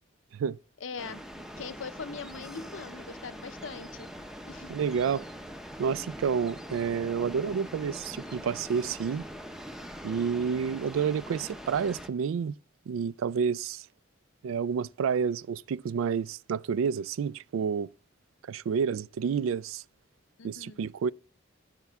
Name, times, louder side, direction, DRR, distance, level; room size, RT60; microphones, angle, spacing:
voice 1, 0.8-4.1 4.5-4.7 20.4-20.8, left 5 dB, 80° left, 0.6 m, -41 dB
sound 1, 1.0-12.1, equal, ahead, 0.6 m, -43 dB
voice 2, 4.7-5.2 5.8-9.2 10.0-12.5 12.9-13.9 14.4-17.9 18.5-19.8 20.4-21.1, right 6 dB, 90° right, 0.3 m, -29 dB
14.0 x 5.9 x 3.5 m
head